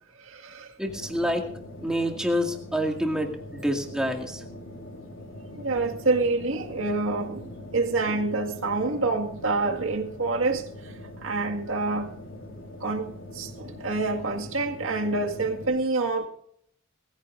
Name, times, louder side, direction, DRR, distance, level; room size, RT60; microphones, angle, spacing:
voice 1, 0.2-0.7 5.6-10.7 11.2-12.2 12.8-16.3, right 3 dB, 80° right, 2.0 m, -27 dB
voice 2, 0.8-1.5 1.8-4.4, equal, 5° right, 2.2 m, -27 dB
sound 1, 0.9-15.7, left 1 dB, 65° left, 3.8 m, -42 dB
21.0 x 15.0 x 2.6 m
head